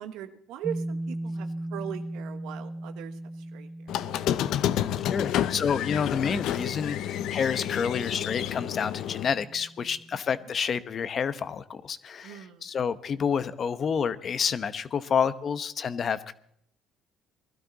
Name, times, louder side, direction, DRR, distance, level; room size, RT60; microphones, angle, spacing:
voice 1, 0.0-4.0 10.1-10.2 12.2-12.7, right 10 dB, 80° right, 9 dB, 1.4 m, -40 dB
sound 1, 0.6-10.1, right 1 dB, 5° left, 0.8 m, -39 dB
Squeak, 3.9-9.2, left 11 dB, 70° left, 0.7 m, -29 dB
voice 2, 5.0-16.3, left 7 dB, 45° left, 13 dB, 1.0 m, -29 dB
20.5 x 12.5 x 4.1 m, 0.68 s
cardioid pair, 105°, 0 cm